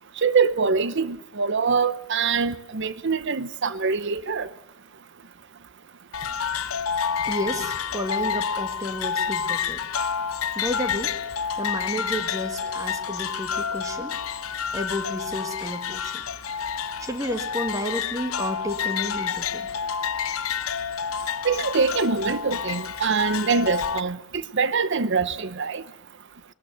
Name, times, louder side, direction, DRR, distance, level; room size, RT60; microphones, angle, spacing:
voice 1, 0.2-4.5 21.4-25.8, right 5 dB, 55° right, 0.8 m, -24 dB
sound 1, 6.1-24.0, left 7 dB, 80° left, 0.8 m, -29 dB
voice 2, 7.3-9.8 10.6-11.1 11.6-14.1 14.7-16.2 17.0-19.7, equal, 15° right, 2.0 m, -31 dB
20.5 x 14.5 x 9.3 m
head